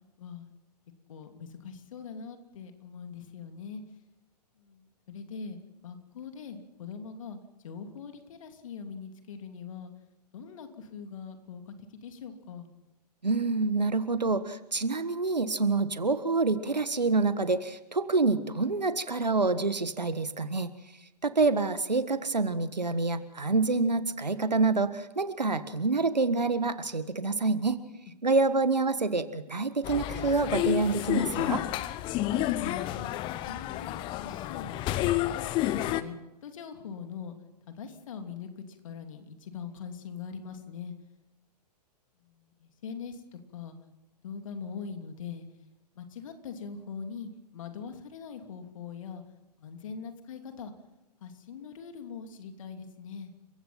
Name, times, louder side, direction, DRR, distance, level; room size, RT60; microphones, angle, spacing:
voice 1, 0.2-0.5 1.1-3.8 4.6-9.9 10.3-12.7 32.6-33.1 33.4-35.2 35.6-36.2 36.4-37.4 37.7-40.9 42.2-43.8 44.2-45.5 45.9-49.2 49.6-50.7 51.2-53.3, left 6 dB, 50° left, 6 dB, 2.9 m, -42 dB
voice 2, 13.2-20.7 21.2-27.8 28.2-31.6, right 3 dB, 80° right, 12 dB, 1.6 m, -27 dB
sound 1, 29.8-36.0, left 14 dB, 25° left, 0.8 m, -30 dB
29.5 x 16.0 x 5.8 m, 0.95 s
figure-of-eight pair, 115°, 21 cm